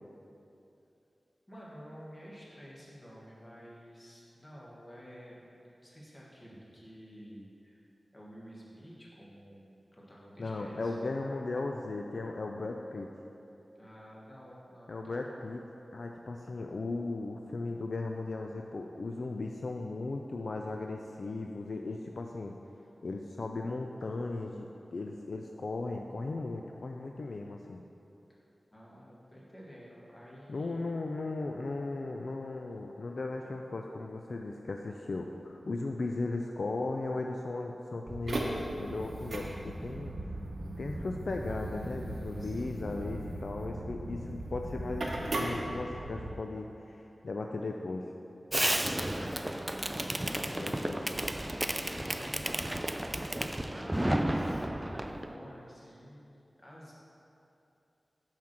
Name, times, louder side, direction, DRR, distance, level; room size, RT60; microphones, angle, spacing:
voice 1, 1.5-7.9 8.1-11.0 13.7-15.4 28.7-30.9 42.4-42.6 48.6-50.1 50.4-54.6 54.9-56.9, equal, 30° left, -6 dB, 1.6 m, -51 dB
voice 2, 10.4-13.1 14.9-15.6 15.9-22.5 23.0-27.8 30.5-40.1 40.8-48.1 50.5-51.1, left 3 dB, 70° left, 2 dB, 0.3 m, -37 dB
sound 1, 38.1-46.3, right 1 dB, 70° right, 0.8 m, -37 dB
Fireworks, 48.5-55.3, right 1 dB, 15° right, 0.3 m, -32 dB
5.8 x 4.4 x 6.2 m, 2.8 s
wide cardioid pair, 70°, 0 cm